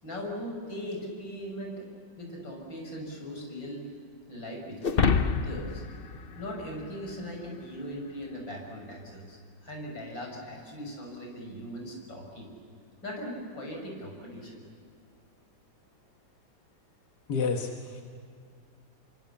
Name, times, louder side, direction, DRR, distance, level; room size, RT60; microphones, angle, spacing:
voice 1, 0.0-1.9 2.2-3.9 4.3-5.9 6.4-12.5 13.0-14.6, equal, 80° left, 1 dB, 6.8 m, -39 dB
sound 1, 4.8-7.3, left 5 dB, 45° left, 0.8 m, -28 dB
voice 2, 17.3-18.0, left 5 dB, 60° left, 3 dB, 2.0 m, -30 dB
28.5 x 24.5 x 7.3 m, 2.3 s
omnidirectional pair, 2.0 m